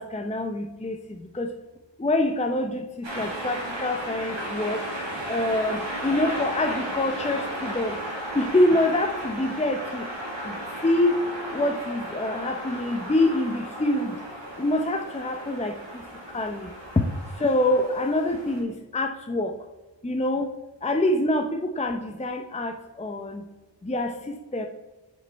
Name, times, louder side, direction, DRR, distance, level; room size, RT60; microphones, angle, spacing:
voice 1, 0.0-1.5 2.0-4.8 5.3-8.0 8.3-10.1 10.4-10.5 10.8-11.2 11.5-14.1 14.6-16.0 16.3-16.7 17.4-19.5 20.0-20.5 20.8-23.4 23.8-24.7, left 1 dB, 15° left, 4 dB, 0.6 m, -26 dB
sound 1, 3.0-18.6, right 1 dB, 85° right, 2.0 m, -35 dB
6.6 x 5.3 x 4.0 m, 1.1 s
wide cardioid pair, 50°, 44 cm